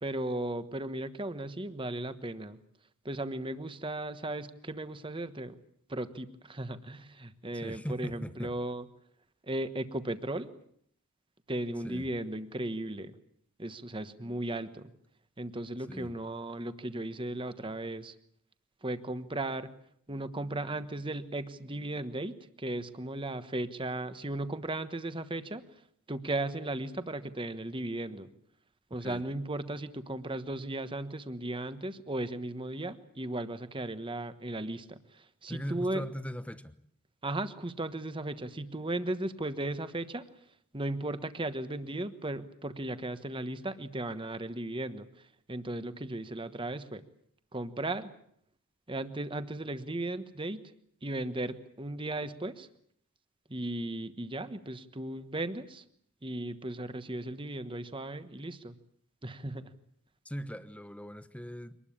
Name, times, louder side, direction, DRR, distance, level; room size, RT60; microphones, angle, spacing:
voice 1, 0.0-2.6 3.0-5.5 5.9-8.8 9.4-10.5 11.5-13.1 13.6-14.9 15.4-18.1 18.8-19.7 20.1-25.6 26.1-28.3 28.9-36.0 37.2-40.3 40.7-45.1 45.5-47.0 47.5-48.1 48.9-50.7 51.0-52.7 53.5-55.8 56.2-58.7 59.2-59.7, right 1 dB, 25° right, 11 dB, 1.3 m, -36 dB
voice 2, 7.5-8.5 11.8-12.1 15.9-16.1 29.0-29.2 35.5-36.7 60.2-61.8, equal, 5° left, 12 dB, 1.1 m, -39 dB
24.5 x 20.0 x 8.7 m, 0.68 s
head